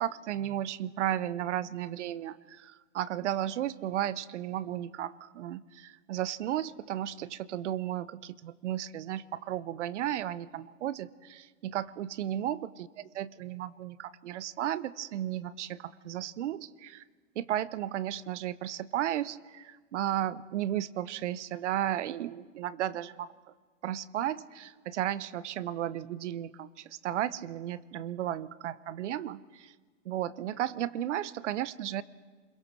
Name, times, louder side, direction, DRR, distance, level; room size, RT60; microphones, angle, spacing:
voice 1, 0.0-17.0 17.4-23.3 23.8-29.7 30.0-32.0, right 12 dB, 60° right, 19 dB, 0.9 m, -34 dB
28.5 x 22.0 x 6.3 m, 1.4 s
hypercardioid pair, 145°, 39 cm